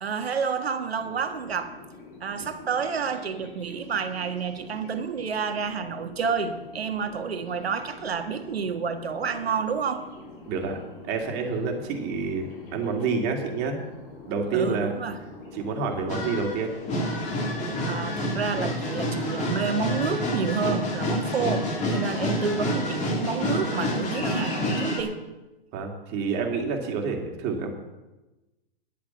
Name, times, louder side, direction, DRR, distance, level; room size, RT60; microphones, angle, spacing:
voice 1, 0.0-1.8 2.2-10.1 14.5-15.2 17.8-25.2, right 6 dB, 80° right, 8 dB, 1.5 m, -29 dB
sound 1, 0.9-18.0, left 2 dB, 55° left, 5.1 m, -46 dB
voice 2, 10.5-10.8 11.0-13.8 14.3-14.9 15.5-16.7 25.7-27.7, right 4 dB, 35° right, 2 dB, 2.4 m, -28 dB
sound 2, 16.1-25.0, left 1 dB, 25° left, 2.7 m, -28 dB
10.5 x 8.8 x 7.2 m, 1.1 s
hypercardioid pair, 125°, 30 cm